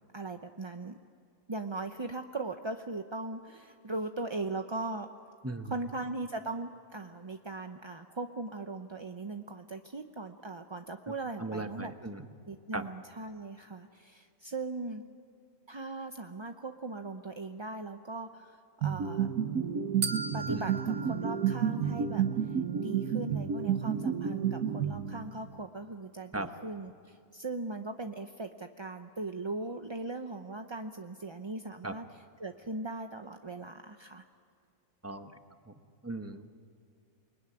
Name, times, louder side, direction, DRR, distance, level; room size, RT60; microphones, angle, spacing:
voice 1, 0.1-1.0 1.5-5.1 5.7-11.9 12.5-15.0 15.7-19.3 20.3-22.2 22.8-32.0 32.4-34.2, right 2 dB, 30° right, 6 dB, 0.5 m, -39 dB
voice 2, 11.4-12.3 12.7-12.9 20.5-20.6 26.3-26.5 31.8-31.9 35.0-35.4 35.7-35.8 36.0-36.5, right 2 dB, 10° right, 7 dB, 1.1 m, -37 dB
sound 1, 18.8-25.5, right 8 dB, 75° right, 1.5 m, -31 dB
sound 2, 20.0-22.3, right 4 dB, 50° right, 1.4 m, -39 dB
28.5 x 21.0 x 9.9 m, 2.3 s
omnidirectional pair, 1.5 m